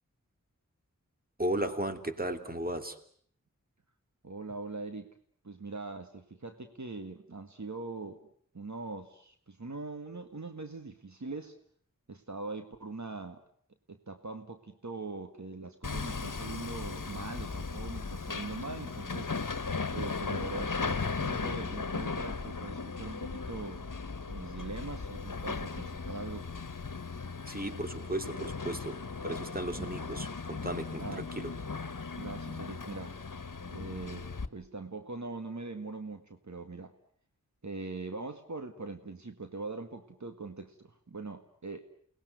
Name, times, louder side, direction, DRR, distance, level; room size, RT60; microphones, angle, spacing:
voice 1, 1.4-3.0 27.5-31.5, right 1 dB, 30° right, 7 dB, 2.9 m, -35 dB
voice 2, 4.2-5.1 5.4-8.2 8.5-11.5 12.1-13.4 13.9-19.3 19.9-23.9 24.3-26.5 29.8-29.9 31.0-31.3 32.2-33.2 33.7-36.9 37.6-41.9, right 3 dB, 60° right, 6 dB, 1.9 m, -42 dB
Hammer, 15.8-34.5, left 4 dB, 75° left, 1.4 m, -37 dB
29.5 x 19.5 x 9.3 m, 0.62 s
wide cardioid pair, 55°, 32 cm